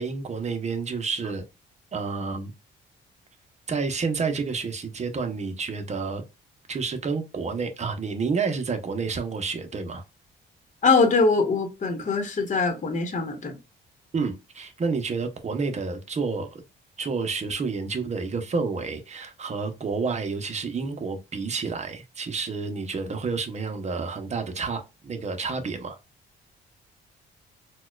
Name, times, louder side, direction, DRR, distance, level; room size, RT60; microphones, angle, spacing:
voice 1, 0.0-1.4 1.9-2.5 3.7-6.2 6.7-10.0 14.1-16.6 17.0-26.0, right 4 dB, 35° right, 0.8 m, -29 dB
voice 2, 10.8-13.5, left 4 dB, 40° left, 1.0 m, -22 dB
4.1 x 2.3 x 2.4 m
cardioid pair, 90°, 20 cm